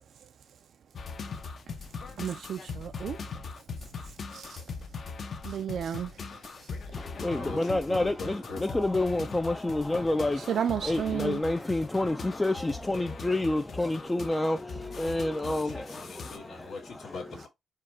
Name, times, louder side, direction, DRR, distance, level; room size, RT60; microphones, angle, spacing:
sound 1, 0.9-16.4, left 4 dB, 50° left, 0.7 m, -41 dB
voice 1, 2.2-3.2 4.3-4.6 5.4-6.1 10.5-11.4, right 8 dB, 65° right, 0.3 m, -32 dB
voice 2, 6.2-8.7 15.4-17.5, left 3 dB, 85° left, 1.9 m, -42 dB
voice 3, 6.9-16.7, left 2 dB, 10° left, 0.3 m, -29 dB
4.7 x 2.2 x 4.3 m
cardioid pair, 140°, 0 cm